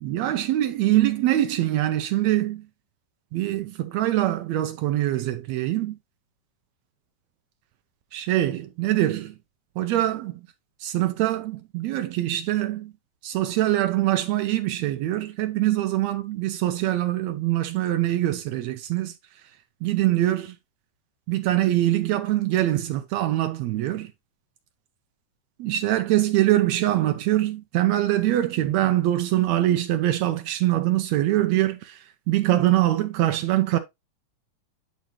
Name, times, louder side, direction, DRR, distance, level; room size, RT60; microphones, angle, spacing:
voice 1, 0.0-2.6 3.3-6.0 8.1-9.3 9.8-10.4 10.8-12.9 13.2-19.1 19.8-20.5 21.3-24.1 25.6-32.0 32.3-33.8, right 14 dB, 90° right, 1.5 m, -23 dB
10.5 x 4.1 x 2.9 m
omnidirectional pair, 3.8 m